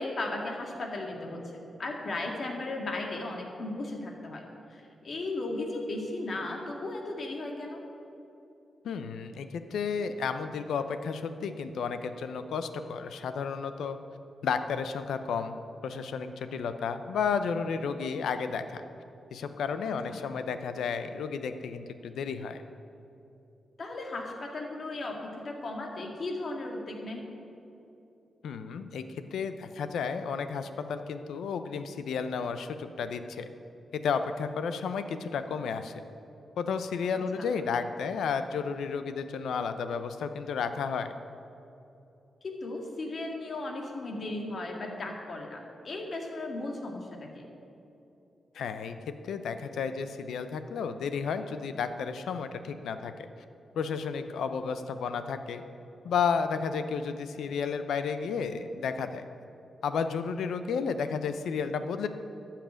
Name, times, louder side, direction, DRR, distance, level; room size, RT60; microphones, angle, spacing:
voice 1, 0.0-4.4 4.7-7.8 20.1-20.2 23.8-27.3 37.4-37.5 42.4-47.5, left 2 dB, 55° left, 1 dB, 2.0 m, -36 dB
voice 2, 8.8-14.0 14.4-15.6 15.8-18.8 19.3-22.6 28.4-29.0 29.3-33.5 33.9-35.9 36.6-41.1 48.5-49.0 49.2-53.1 53.7-55.6 56.0-59.2 59.8-62.1, left 6 dB, 90° left, 9 dB, 0.6 m, -32 dB
12.0 x 5.9 x 8.7 m, 2.8 s
cardioid pair, 65°, 0 cm